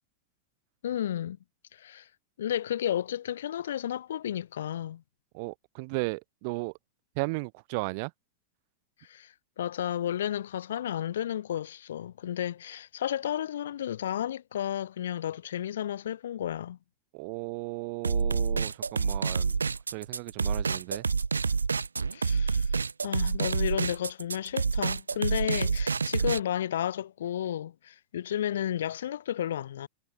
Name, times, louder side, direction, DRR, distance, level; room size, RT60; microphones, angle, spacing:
voice 1, 0.8-1.4 1.7-2.1 2.4-5.0 9.0-16.8 22.1-22.8 23.0-29.9, left 10 dB, 60° left, 0.7 m, -32 dB
voice 2, 5.3-6.7 7.2-8.1 17.1-19.6 19.9-21.1, right 31 dB, 45° right, 2.0 m, -35 dB
sound 1, 18.0-26.4, right 5 dB, 75° right, 0.3 m, -28 dB
figure-of-eight pair, 90°, 0 cm